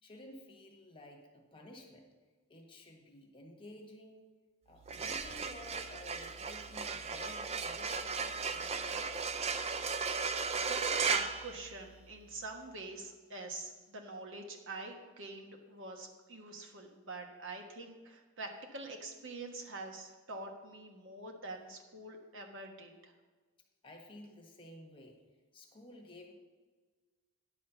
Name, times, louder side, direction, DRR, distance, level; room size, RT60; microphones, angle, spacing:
voice 1, 0.0-2.1 2.5-4.2 4.6-9.2 23.8-25.2 25.5-26.3, left 1 dB, 25° left, 1 dB, 1.4 m, -53 dB
sound 1, 4.8-12.2, right 5 dB, 30° right, 0.5 m, -36 dB
voice 2, 10.6-23.1, right 2 dB, 65° right, 3 dB, 1.3 m, -45 dB
10.5 x 4.3 x 6.9 m, 1.4 s
head